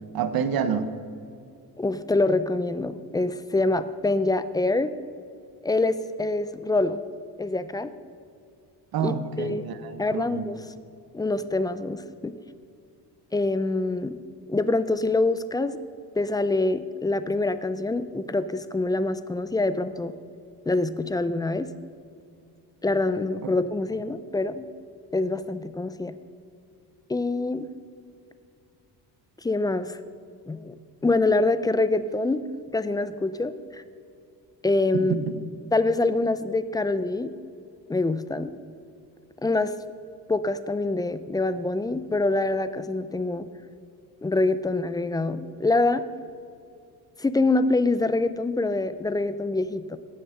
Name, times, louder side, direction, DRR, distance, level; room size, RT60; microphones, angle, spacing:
voice 1, 0.1-0.9 8.9-10.5 23.4-23.5 35.1-35.2, right 7 dB, 60° right, 11 dB, 1.0 m, -28 dB
voice 2, 1.8-4.9 5.6-7.0 7.4-7.9 9.0-9.6 10.0-10.6 11.1-12.3 13.3-14.2 14.5-15.8 16.2-20.1 20.7-21.7 22.8-24.7 25.1-26.1 27.1-27.7 29.4-30.0 30.5-30.8 31.0-32.4 32.7-33.8 34.6-35.2 35.7-37.3 37.9-38.5 39.4-39.7 40.3-43.5 44.2-46.0 47.2-50.0, left 2 dB, 10° left, 13 dB, 0.3 m, -25 dB
17.0 x 6.5 x 5.7 m, 2.4 s
cardioid pair, 130°, 40 cm